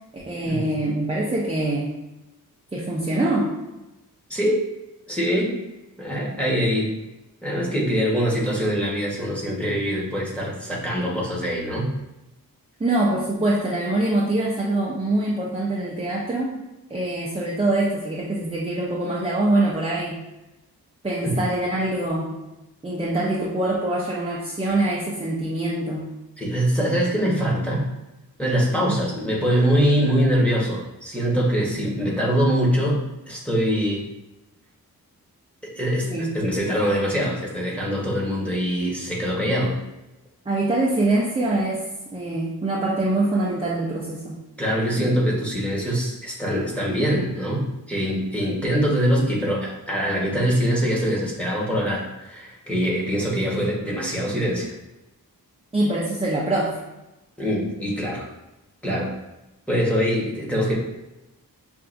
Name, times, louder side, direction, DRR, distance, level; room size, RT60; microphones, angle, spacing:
voice 1, 0.1-1.9 2.7-3.6 12.8-16.6 16.9-20.2 21.0-22.4 22.8-26.1 36.1-36.4 40.5-41.8 42.1-44.3 55.7-56.8, right 2 dB, 15° right, -4 dB, 0.6 m, -24 dB
voice 2, 4.3-4.6 5.1-5.6 6.0-6.9 7.4-11.9 21.2-21.4 26.4-27.9 28.4-34.0 35.6-39.8 44.6-54.7 57.4-58.3 58.8-59.1 59.7-60.7, equal, 5° left, -5 dB, 1.2 m, -23 dB
5.7 x 2.6 x 2.6 m, 1.0 s
wide cardioid pair, 90°, 37 cm